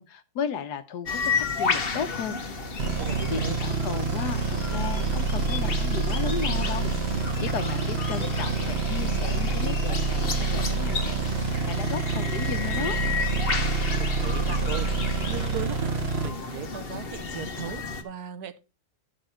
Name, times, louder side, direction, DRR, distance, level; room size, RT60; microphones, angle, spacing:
voice 1, 0.0-2.4 3.3-13.0, left 7 dB, 85° left, 1.5 m, -35 dB
sound 1, 1.1-18.0, left 4 dB, 40° left, 1.2 m, -32 dB
sound 2, 2.8-16.3, right 4 dB, 45° right, 1.0 m, -27 dB
voice 2, 2.9-3.6 13.9-14.9 15.3-15.9 16.2-18.6, right 9 dB, 80° right, 1.4 m, -37 dB
12.0 x 5.4 x 4.4 m
omnidirectional pair, 1.7 m